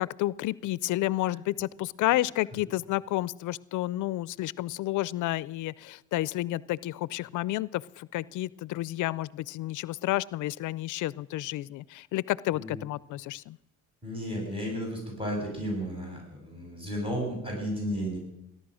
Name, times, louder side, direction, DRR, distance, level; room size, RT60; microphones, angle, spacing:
voice 1, 0.0-13.6, left 16 dB, 80° left, 21 dB, 0.5 m, -30 dB
voice 2, 14.0-18.2, equal, 20° right, -1 dB, 7.2 m, -33 dB
20.0 x 11.0 x 6.2 m, 0.84 s
cardioid pair, 90°, 30 cm